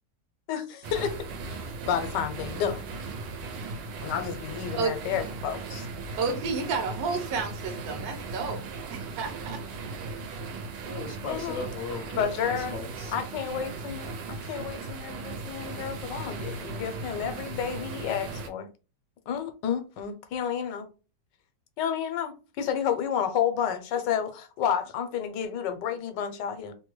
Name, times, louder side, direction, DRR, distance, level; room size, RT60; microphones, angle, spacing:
voice 1, 0.5-2.9 4.0-5.9 11.2-11.7 12.2-12.8 13.1-18.7 19.3-20.9 21.8-26.7, left 8 dB, 85° left, 1.3 m, -31 dB
sound 1, 0.8-18.5, right 3 dB, 90° right, 1.3 m, -37 dB
voice 2, 6.2-8.6 8.9-9.6, right 4 dB, 65° right, 1.2 m, -31 dB
voice 3, 10.8-13.1, left 3 dB, 65° left, 0.8 m, -37 dB
3.1 x 2.2 x 3.1 m
omnidirectional pair, 1.9 m